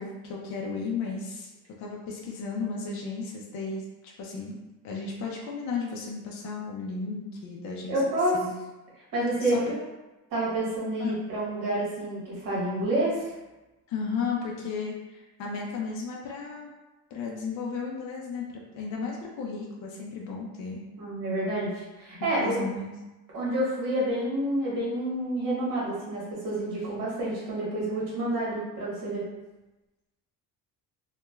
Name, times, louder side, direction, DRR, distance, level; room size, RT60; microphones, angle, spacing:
voice 1, 0.0-1.5 1.8-4.6 4.8-8.0 8.3-8.5 9.4-9.9 11.0-11.2 13.9-16.7 17.1-18.5 18.7-20.8 22.2-22.9, left 4 dB, 50° left, -2 dB, 0.4 m, -34 dB
voice 2, 7.9-8.4 9.1-9.6 10.3-13.3 21.0-22.6 23.3-29.2, right 1 dB, 60° right, -7 dB, 1.2 m, -28 dB
3.0 x 2.2 x 2.2 m, 1.1 s
cardioid pair, 170°, 37 cm